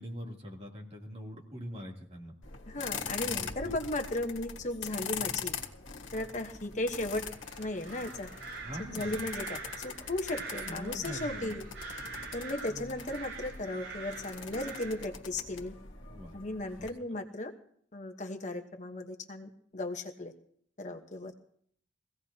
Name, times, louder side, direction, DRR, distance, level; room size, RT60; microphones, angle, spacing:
voice 1, 0.0-2.3 3.2-3.8 8.6-9.3 10.7-11.6 12.7-12.9 16.0-16.3 16.8-17.2, equal, 35° right, -1 dB, 3.0 m, -43 dB
sound 1, 2.4-16.9, left 6 dB, 85° left, 1.7 m, -42 dB
voice 2, 2.7-5.5 6.1-7.2 7.6-8.3 8.8-11.7 12.3-15.7 16.3-17.5 17.9-20.3 20.8-21.3, left 1 dB, 40° left, 5 dB, 1.2 m, -36 dB
sound 2, 7.3-15.1, right 4 dB, 90° right, 7.6 m, -44 dB
23.0 x 17.0 x 2.9 m, 0.62 s
head